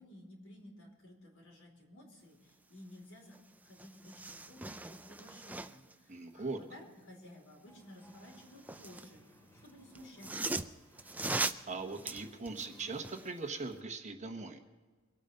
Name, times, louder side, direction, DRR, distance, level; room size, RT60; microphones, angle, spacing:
voice 1, 0.0-3.4 3.6-9.2 9.6-10.8, left 1 dB, 60° left, 0 dB, 4.4 m, -54 dB
sound 1, 3.3-3.4 3.7-5.9 8.1-9.1 9.9-13.3 13.7-13.8, right 2 dB, 5° right, 0.4 m, -40 dB
voice 2, 6.1-6.6 11.3-14.7, right 3 dB, 30° right, 5 dB, 1.1 m, -41 dB
sound 2, 7.7-13.0, left 1 dB, 15° left, 2.3 m, -62 dB
24.0 x 9.0 x 5.5 m, 1.4 s
head